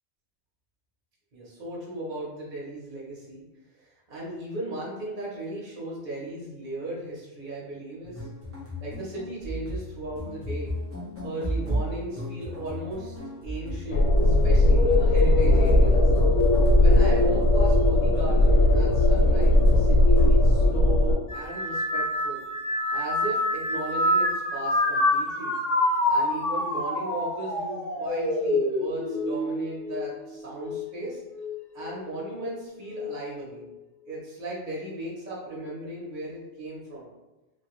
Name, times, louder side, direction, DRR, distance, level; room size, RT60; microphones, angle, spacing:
voice 1, 1.3-3.4 3.7-8.3 8.8-10.7 11.2-13.2 13.4-16.1 16.8-22.4 22.9-25.5 26.1-31.2 31.7-33.7 34.1-37.1, right 2 dB, 45° right, -6 dB, 0.8 m, -36 dB
sound 1, 8.0-20.4, right 1 dB, 20° right, 0.4 m, -34 dB
sound 2, 13.9-21.1, left 1 dB, 85° left, 1.0 m, -19 dB
sound 3, 21.3-30.9 31.3-31.9 32.9-33.3, left 1 dB, 60° left, 0.6 m, -27 dB
2.8 x 2.5 x 2.9 m, 1.1 s
omnidirectional pair, 1.4 m